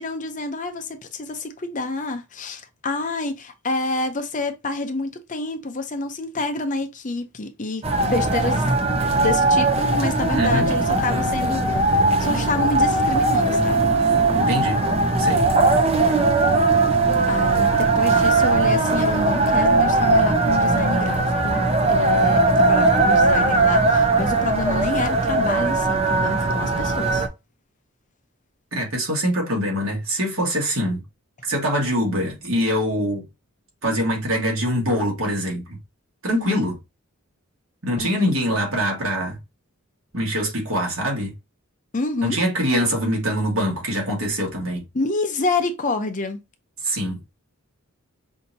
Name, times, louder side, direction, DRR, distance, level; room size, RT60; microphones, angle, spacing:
voice 1, 0.0-8.7 9.2-11.9 12.2-13.8 17.3-21.6 21.9-27.2 36.3-36.6 38.0-38.3 41.9-42.4 44.9-46.4, left 3 dB, 35° left, 0.6 m, -28 dB
sound 1, 7.8-27.3, right 2 dB, 30° right, 0.7 m, -19 dB
voice 2, 10.3-10.7 14.4-14.8 15.2-15.5 28.7-31.0 31.4-33.3 33.8-35.8 36.2-36.7 37.8-39.4 40.1-41.3 42.2-44.8 46.8-47.2, equal, 65° right, 2.0 m, -24 dB
5.5 x 2.8 x 2.7 m
head